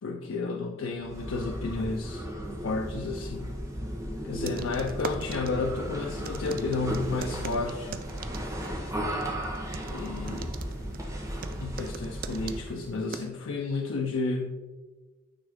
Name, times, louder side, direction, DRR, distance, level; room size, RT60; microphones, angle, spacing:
voice 1, 0.0-2.2 2.6-3.5 4.2-8.0 9.8-10.5 11.6-14.7, left 3 dB, 85° left, 2 dB, 0.5 m, -32 dB
sound 1, 1.0-12.7, equal, 15° right, 1.0 m, -35 dB
sound 2, 4.4-13.3, right 5 dB, 50° right, 0.4 m, -42 dB
9.2 x 3.5 x 3.5 m, 1.3 s
head